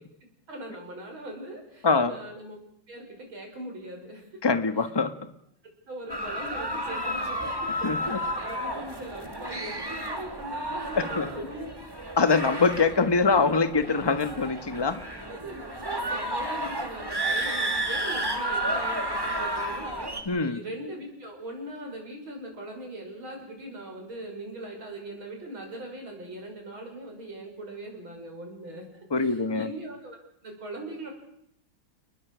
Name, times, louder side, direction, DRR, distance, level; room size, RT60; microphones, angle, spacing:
voice 1, 0.5-2.6 2.9-4.3 4.8-4.9 5.9-11.9 15.3-28.9 29.2-31.1, right 1 dB, 85° right, 2 dB, 6.9 m, -40 dB
voice 2, 1.8-2.1 4.4-5.1 7.8-8.2 11.2-11.5 12.2-15.0 20.3-20.6 29.1-29.7, left 4 dB, 15° left, 10 dB, 1.2 m, -24 dB
sound 1, 6.1-20.2, right 1 dB, 10° right, 2.1 m, -32 dB
29.5 x 21.0 x 6.3 m, 0.73 s
omnidirectional pair, 2.2 m